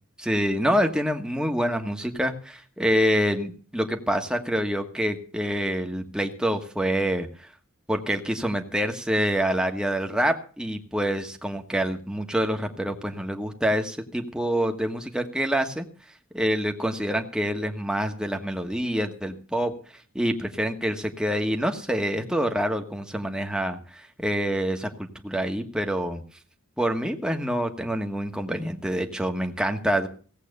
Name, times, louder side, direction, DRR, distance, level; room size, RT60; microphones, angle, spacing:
voice 1, 0.2-7.5 7.9-15.9 16.3-19.7 20.1-26.2 26.8-30.1, equal, 5° right, 4 dB, 1.4 m, -26 dB
17.5 x 8.3 x 6.7 m, 0.42 s
head